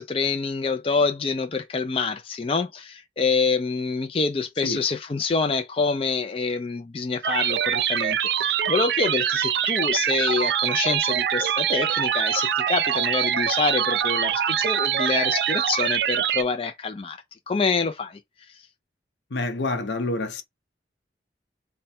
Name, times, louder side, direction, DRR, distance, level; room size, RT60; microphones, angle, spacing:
voice 1, 0.0-17.2 17.5-18.2, left 4 dB, 30° left, 0.4 m, -26 dB
sound 1, 7.2-16.4, right 9 dB, 60° right, 0.3 m, -24 dB
Wind instrument woodwind instrument, 10.4-15.8, equal, 5° right, 0.7 m, -38 dB
voice 2, 19.3-20.4, left 2 dB, 75° left, 0.7 m, -27 dB
3.3 x 2.2 x 4.2 m
head